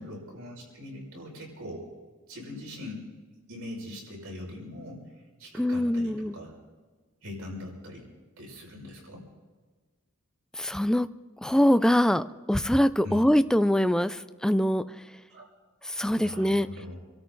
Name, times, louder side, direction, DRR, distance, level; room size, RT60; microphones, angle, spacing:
voice 1, 0.0-1.9 2.3-3.1 3.5-5.0 5.4-6.5 7.2-8.1 8.4-9.2 13.0-13.2 15.3-15.5 16.2-17.0, left 1 dB, 90° right, -3 dB, 5.8 m, -41 dB
voice 2, 5.6-6.4 10.6-11.1 11.4-14.8 15.8-16.7, equal, 5° left, 11 dB, 0.4 m, -23 dB
27.0 x 13.0 x 3.9 m, 1.4 s
head